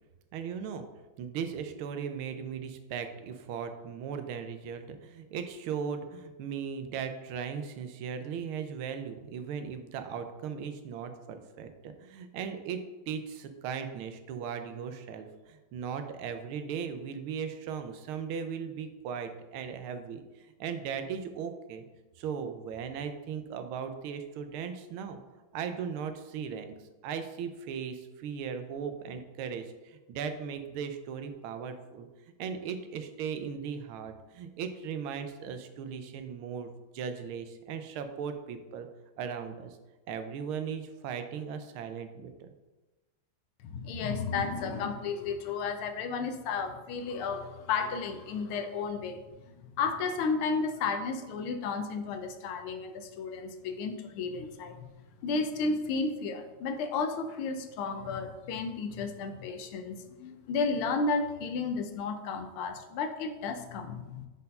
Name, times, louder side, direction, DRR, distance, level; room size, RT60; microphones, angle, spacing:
voice 1, 0.3-0.9 1.2-12.8 13.1-21.8 22.2-25.2 25.5-26.7 27.0-32.1 32.4-38.9 39.2-39.8 40.1-42.5, right 7 dB, 80° right, 8 dB, 1.5 m, -37 dB
voice 2, 43.6-49.2 49.8-54.9 55.2-64.3, left 4 dB, 85° left, 7 dB, 1.6 m, -33 dB
5.5 x 4.2 x 5.2 m, 1.1 s
omnidirectional pair, 2.3 m